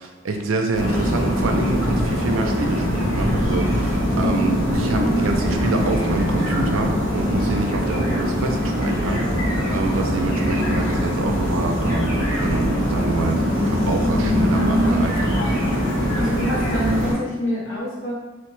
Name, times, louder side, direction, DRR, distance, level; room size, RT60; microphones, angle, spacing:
voice 1, 0.0-15.5, right 3 dB, 80° right, 3 dB, 0.4 m, -27 dB
sound 1, 0.7-17.1, equal, 90° left, 1.3 m, -22 dB
voice 2, 4.1-4.5 15.7-15.9 16.1-18.1, equal, 70° left, -6 dB, 1.0 m, -26 dB
2.9 x 2.1 x 3.1 m, 1.2 s
head